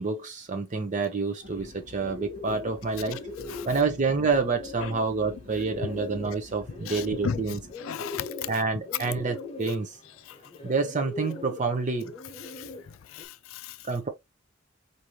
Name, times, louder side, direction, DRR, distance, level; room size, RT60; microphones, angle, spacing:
voice 1, 0.0-3.2 3.7-7.6 8.5-10.0 10.6-12.1 13.8-14.1, right 4 dB, 40° right, 0.6 m, -28 dB
sound 1, 1.4-7.7, left 2 dB, 55° right, 1.1 m, -48 dB
Bird, 1.6-13.3, left 3 dB, 30° left, 1.1 m, -41 dB
voice 2, 6.9-7.5 7.8-8.3 12.5-13.8, left 7 dB, 80° left, 0.4 m, -36 dB
4.8 x 2.7 x 2.9 m
head